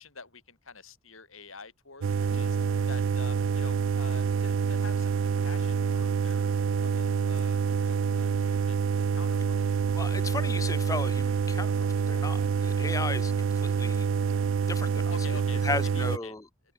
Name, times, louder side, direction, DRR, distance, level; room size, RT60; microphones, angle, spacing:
voice 1, 0.0-2.1 2.3-2.6 2.9-5.2 5.4-8.8 9.1-9.6 15.1-16.4, left 4 dB, 85° left, 6.0 m, -46 dB
sound 1, 2.0-16.2, right 6 dB, 70° right, 0.4 m, -27 dB
voice 2, 9.9-11.7 12.1-14.1 14.7-15.1 15.6-16.4, left 3 dB, 15° left, 0.5 m, -35 dB
open air
head